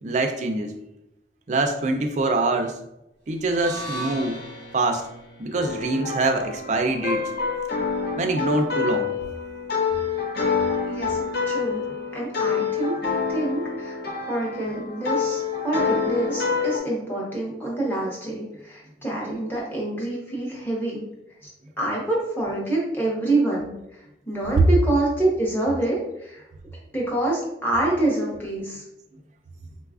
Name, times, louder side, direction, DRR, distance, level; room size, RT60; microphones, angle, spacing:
voice 1, 0.0-0.8 1.5-2.8 3.3-4.4 4.7-5.1 5.4-7.3 8.2-9.1, right 2 dB, 40° right, 5 dB, 0.3 m, -24 dB
sound 1, 3.4-7.6, right 1 dB, 75° left, 1.2 m, -39 dB
sound 2, 5.5-16.8, left 5 dB, 55° left, 0.5 m, -27 dB
voice 2, 10.9-11.2 11.4-11.8 12.1-12.9 13.3-14.0 14.3-21.0 21.4-21.5 21.8-23.7 24.3-26.4 26.9-28.8, right 2 dB, 10° left, -4 dB, 0.8 m, -26 dB
3.9 x 2.3 x 2.4 m, 0.85 s
head